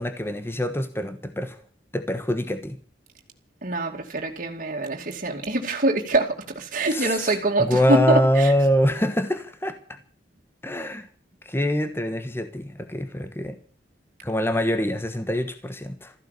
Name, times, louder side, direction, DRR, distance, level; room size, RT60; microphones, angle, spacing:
voice 1, 0.0-1.6 1.9-2.8 6.9-9.8 10.6-11.1 11.4-13.6 14.2-16.1, equal, 15° left, 9 dB, 1.2 m, -24 dB
voice 2, 3.6-8.5, right 2 dB, 50° right, 1 dB, 2.5 m, -24 dB
15.0 x 11.0 x 8.2 m, 0.43 s
head